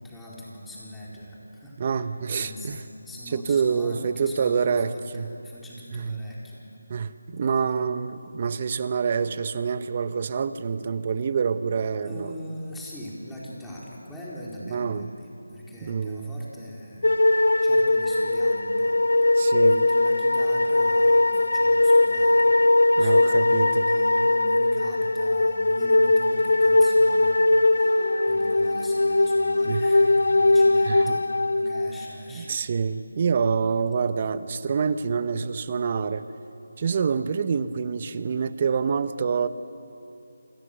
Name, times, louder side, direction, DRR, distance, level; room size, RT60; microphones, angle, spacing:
voice 1, 0.0-2.0 2.3-6.6 12.0-17.1 17.6-19.0 19.6-22.6 23.0-27.4 27.7-32.5, left 1 dB, 5° left, -6 dB, 4.5 m, -41 dB
voice 2, 1.8-2.8 3.3-5.3 5.9-6.2 6.9-12.3 14.7-15.1 15.8-16.4 19.4-19.9 23.0-24.0 29.6-29.8 30.9-31.2 32.3-36.3 36.8-39.5, right 6 dB, 35° right, 13 dB, 1.0 m, -26 dB
sound 1, 17.0-32.2, left 2 dB, 75° left, 0.8 m, -20 dB
27.5 x 27.0 x 6.8 m, 2.6 s
figure-of-eight pair, 160°, 0 cm